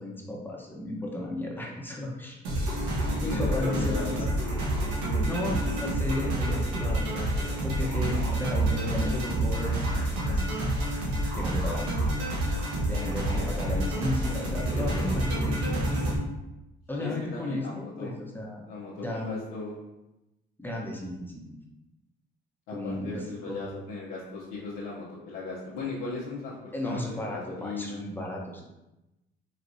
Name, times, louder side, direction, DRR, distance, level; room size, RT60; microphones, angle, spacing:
voice 1, 0.0-2.4 3.2-4.2 5.2-7.3 7.6-10.4 11.3-11.9 12.9-15.9 16.9-18.7 18.9-19.4 20.6-21.4 22.7-23.7 26.7-28.6, left 1 dB, 10° left, -2 dB, 1.0 m, -34 dB
sound 1, 2.4-16.2, right 1 dB, 90° right, 1.1 m, -28 dB
voice 2, 3.1-4.3 17.0-18.1 18.7-19.8 22.7-28.0, left 3 dB, 90° left, -7 dB, 0.8 m, -37 dB
4.8 x 3.2 x 2.7 m, 0.96 s
supercardioid pair, 70°, 21 cm